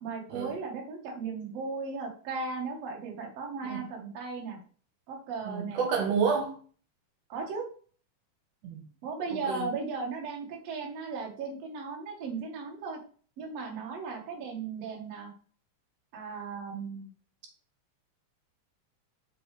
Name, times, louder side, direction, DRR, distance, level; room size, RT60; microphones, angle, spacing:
voice 1, 0.0-4.6 5.1-5.8 7.3-7.6 9.0-13.0 13.4-15.3 16.1-17.1, right 4 dB, 60° right, 2.3 m, -36 dB
voice 2, 5.4-6.6 8.6-8.8 9.5-9.7 14.1-14.2, right 6 dB, 75° right, 2.7 m, -29 dB
6.9 x 4.6 x 3.2 m
omnidirectional pair, 3.6 m